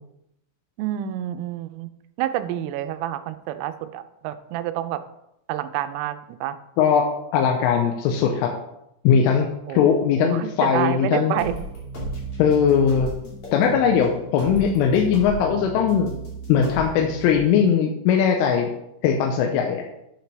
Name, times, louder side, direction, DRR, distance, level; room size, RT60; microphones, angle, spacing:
voice 1, 0.8-1.9 2.2-5.0 5.5-6.6 9.7-9.9 10.2-11.6, right 12 dB, 90° right, 11 dB, 3.3 m, -28 dB
voice 2, 7.3-8.5 9.0-9.5 9.7-11.4 12.4-13.1 13.5-16.1 16.5-18.7 19.0-19.9, left 7 dB, 85° left, 2 dB, 3.2 m, -19 dB
sound 1, 11.4-17.4, right 2 dB, 50° left, 1.9 m, -34 dB
9.0 x 8.0 x 3.4 m, 0.82 s
omnidirectional pair, 5.8 m